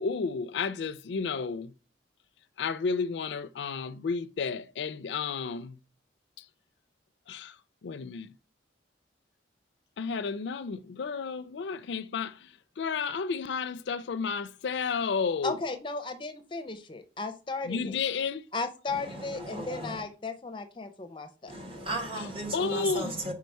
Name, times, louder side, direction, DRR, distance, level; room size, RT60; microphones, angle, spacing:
voice 1, 0.0-1.7 2.6-5.8 7.3-7.6 7.8-8.3 10.0-12.5 12.8-15.6 17.7-18.4 22.5-23.3, left 5 dB, 75° left, 0.4 m, -32 dB
voice 2, 15.4-18.0 18.5-21.5, left 3 dB, 25° left, 0.5 m, -35 dB
voice 3, 18.9-20.0 21.5-23.3, right 1 dB, 30° right, 1.6 m, -36 dB
4.8 x 4.6 x 5.3 m
head